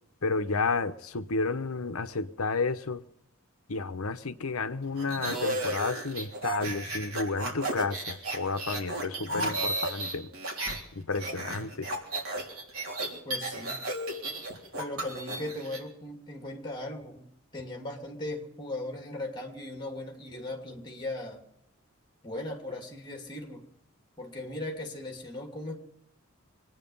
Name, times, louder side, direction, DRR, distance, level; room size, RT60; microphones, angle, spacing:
voice 1, 0.2-3.0 3.7-10.3 10.9-11.9, left 4 dB, 85° left, 1.0 m, -31 dB
sound 1, 5.0-10.8 11.1-15.8, right 2 dB, 80° right, 3.5 m, -34 dB
voice 2, 13.2-13.8 14.8-21.4 22.2-23.6 24.2-25.8, left 1 dB, 20° left, 2.7 m, -38 dB
24.5 x 9.7 x 5.5 m
head